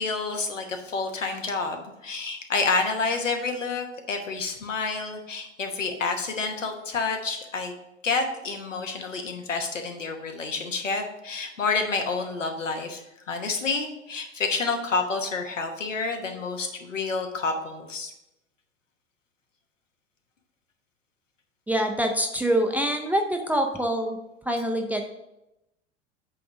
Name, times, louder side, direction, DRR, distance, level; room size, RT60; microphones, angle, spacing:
voice 1, 0.0-7.7 8.0-13.0 13.3-18.1, left 4 dB, 80° left, 4 dB, 1.2 m, -29 dB
voice 2, 21.7-24.2 24.5-25.0, right 1 dB, 5° right, 3 dB, 0.5 m, -25 dB
8.3 x 3.4 x 6.1 m, 0.89 s
figure-of-eight pair, 85°, 37 cm